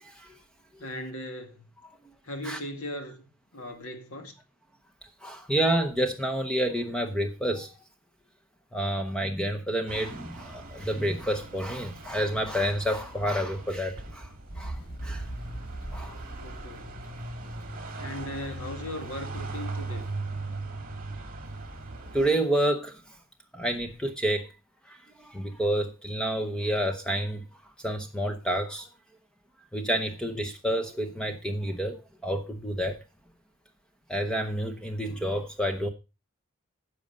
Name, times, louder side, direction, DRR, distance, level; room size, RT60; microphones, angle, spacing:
voice 1, 0.8-1.6 2.2-3.2 3.5-4.3 16.3-17.0 17.9-20.1, left 1 dB, 70° left, 2.2 m, -38 dB
voice 2, 5.2-7.7 8.7-14.3 14.6-15.2 15.9-16.2 22.1-22.9 23.5-24.5 25.2-27.4 27.8-28.9 29.7-32.0 32.2-33.0 34.1-35.9, right 1 dB, 5° left, 0.8 m, -29 dB
sound 1, 9.9-22.3, right 2 dB, 40° right, 2.2 m, -39 dB
sound 2, 14.5-20.1, right 1 dB, 90° left, 2.9 m, -41 dB
10.5 x 6.3 x 5.3 m
head